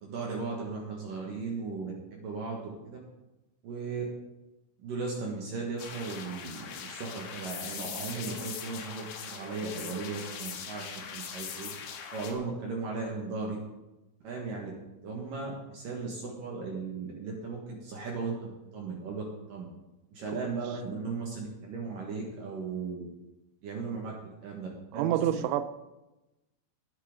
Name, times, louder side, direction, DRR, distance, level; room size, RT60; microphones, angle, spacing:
voice 1, 0.0-3.0 3.6-4.0 4.8-11.7 12.1-13.6 14.2-14.7 15.0-19.7 20.1-23.0 23.6-24.1 24.4-25.2, right 4 dB, 60° right, -1 dB, 2.5 m, -36 dB
sound 1, 5.8-12.3, left 7 dB, 70° left, 3.4 m, -41 dB
voice 2, 24.9-25.6, right 11 dB, 80° right, 11 dB, 2.8 m, -27 dB
19.0 x 8.6 x 3.8 m, 1.0 s
omnidirectional pair, 5.7 m